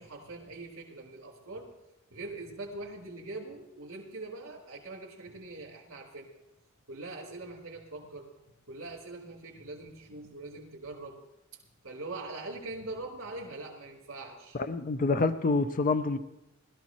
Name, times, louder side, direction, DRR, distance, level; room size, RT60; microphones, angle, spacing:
voice 1, 0.0-1.7 2.1-6.3 6.9-8.3 8.7-11.2 11.8-14.6, right 2 dB, 70° right, -6 dB, 3.0 m, -42 dB
voice 2, 14.5-16.2, left 3 dB, 40° left, 10 dB, 0.5 m, -27 dB
21.0 x 14.0 x 3.0 m, 0.89 s
head